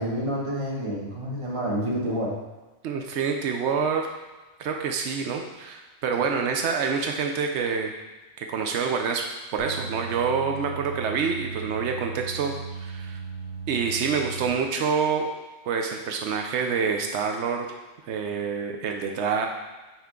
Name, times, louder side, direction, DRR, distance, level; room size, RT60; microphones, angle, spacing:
voice 1, 0.0-2.4, equal, 30° right, -4 dB, 1.2 m, -28 dB
voice 2, 2.8-4.1 4.6-7.9 8.4-13.2 13.7-15.3 15.7-17.7 18.1-19.5, right 6 dB, 85° right, 3 dB, 0.9 m, -27 dB
sound 1, 9.6-14.5, right 5 dB, 55° right, 0.9 m, -37 dB
5.7 x 4.6 x 3.7 m, 1.2 s
omnidirectional pair, 1.1 m